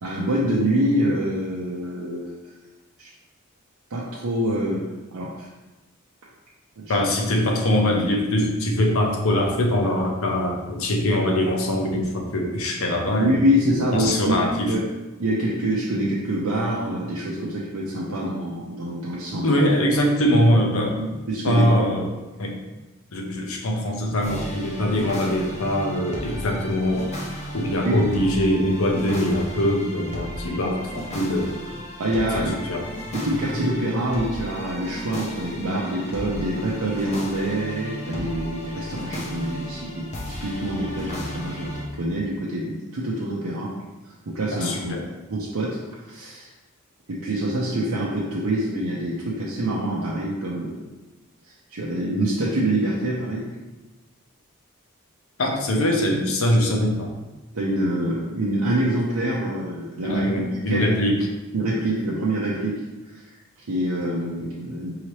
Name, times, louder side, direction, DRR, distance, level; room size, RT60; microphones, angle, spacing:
voice 1, 0.0-2.5 3.0-3.1 3.9-4.8 5.1-5.5 6.8-6.9 13.2-14.4 14.7-14.8 15.2-19.5 21.3-21.6 27.8-28.0 32.0-32.5 33.1-43.7 44.0-44.9 45.3-46.5 47.1-50.8 51.4-53.4 57.5-60.2 60.7-60.8 61.5-63.2 63.7-64.9, right 1 dB, 80° right, -5 dB, 0.6 m, -25 dB
voice 2, 6.9-13.4 13.9-14.7 19.4-22.1 22.4-22.6 23.1-27.1 27.5-31.8 32.3-32.8 44.5-45.1 55.4-57.1 60.1-61.3, left 1 dB, 70° left, 1 dB, 0.7 m, -22 dB
sound 1, 24.2-41.8, equal, 30° left, 0.6 m, -35 dB
4.8 x 2.9 x 3.1 m, 1.1 s
head